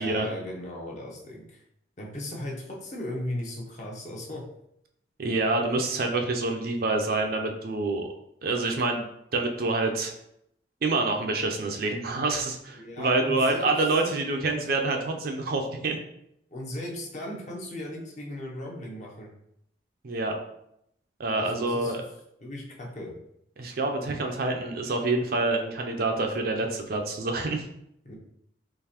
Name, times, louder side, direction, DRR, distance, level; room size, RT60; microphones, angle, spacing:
voice 1, 0.0-1.6 2.0-4.4 12.7-13.7 16.5-19.3 21.4-21.9 22.4-23.1 28.0-28.2, left 1 dB, 40° left, -2 dB, 0.7 m, -37 dB
voice 2, 5.2-8.1 8.4-10.1 10.8-16.0 20.0-20.4 21.2-22.0 23.6-27.6, right 2 dB, 55° right, 3 dB, 0.5 m, -27 dB
3.8 x 3.0 x 2.9 m, 0.76 s
head